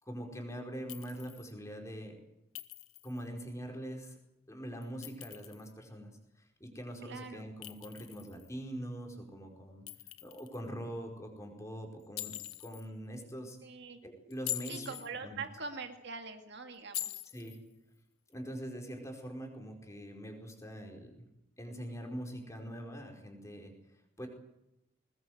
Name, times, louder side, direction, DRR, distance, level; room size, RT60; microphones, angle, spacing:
voice 1, 0.0-2.2 3.0-4.1 4.5-9.8 10.2-13.6 14.0-14.9 15.2-15.4 17.2-17.6 18.3-21.3 21.6-23.7 24.2-24.3, equal, 15° left, 2 dB, 4.9 m, -43 dB
Chink clink, 0.9-1.5 2.6-3.2 4.8-5.7 7.6-8.5 9.9-10.6 12.2-12.9 14.3-15.1 16.9-17.6, left 14 dB, 90° left, 1.3 m, -43 dB
voice 2, 7.0-7.5 13.6-14.0 14.7-17.2, right 4 dB, 55° right, 5 dB, 2.2 m, -43 dB
21.5 x 20.0 x 8.0 m, 0.86 s
head